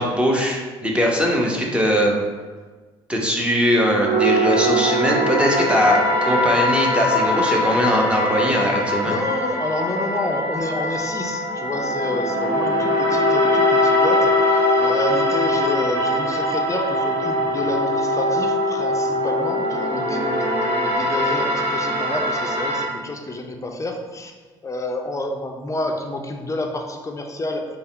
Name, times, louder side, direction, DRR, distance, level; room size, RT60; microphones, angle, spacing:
voice 1, 0.0-2.1 3.1-9.1, equal, 10° right, -1 dB, 1.0 m, -20 dB
sound 1, 4.0-22.8, left 1 dB, 40° right, 1.2 m, -21 dB
voice 2, 9.0-24.3 24.6-27.7, left 2 dB, 20° left, 3 dB, 0.7 m, -29 dB
5.4 x 2.2 x 4.3 m, 1.4 s
figure-of-eight pair, 55°, 14 cm